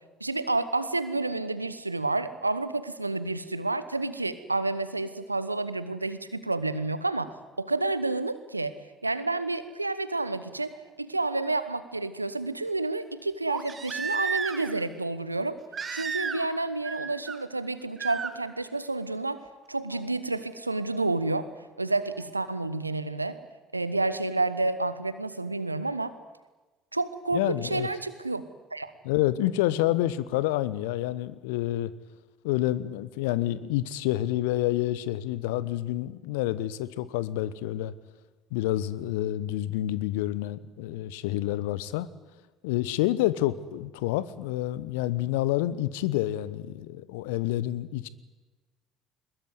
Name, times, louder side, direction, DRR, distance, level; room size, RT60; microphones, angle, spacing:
voice 1, 0.2-8.7 9.0-10.7 11.0-15.6 15.9-19.4 19.7-21.5 21.8-23.4 23.7-26.1 26.9-28.4 28.7-28.9, right 2 dB, 90° right, 14 dB, 1.0 m, -30 dB
Crying sobbing, 10.8-10.9 13.5-14.8 15.7-16.6 16.8-17.4 18.0-18.3 19.9-20.0, right 5 dB, 35° right, 2.2 m, -33 dB
voice 2, 27.3-27.9 29.0-31.9 32.4-37.9 38.5-42.1 42.6-48.1, left 14 dB, 70° left, 18 dB, 1.0 m, -28 dB
22.0 x 21.0 x 9.6 m, 1.2 s
figure-of-eight pair, 55°, 0 cm